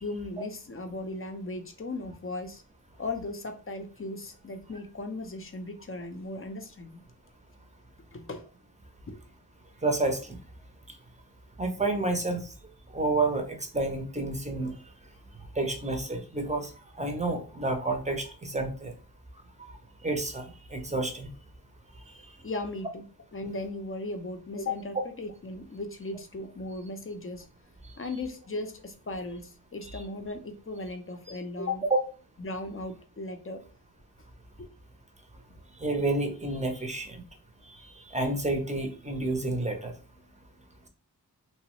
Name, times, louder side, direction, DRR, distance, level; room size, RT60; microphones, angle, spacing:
voice 1, 0.0-2.6 3.0-7.0 8.1-8.4 9.1-9.2 22.4-23.0 23.3-27.5 28.0-31.8 32.4-33.6 34.6-34.7, left 2 dB, 35° left, 6 dB, 0.5 m, -37 dB
voice 2, 9.8-10.4 11.6-12.5 12.9-14.7 15.5-16.7 17.0-18.9 20.0-21.3 29.9-30.0 31.3-31.4 31.9-32.0 35.8-37.2 38.1-39.9, right 2 dB, 20° right, 4 dB, 0.6 m, -29 dB
2.8 x 2.1 x 2.9 m, 0.35 s
wide cardioid pair, 60°, 39 cm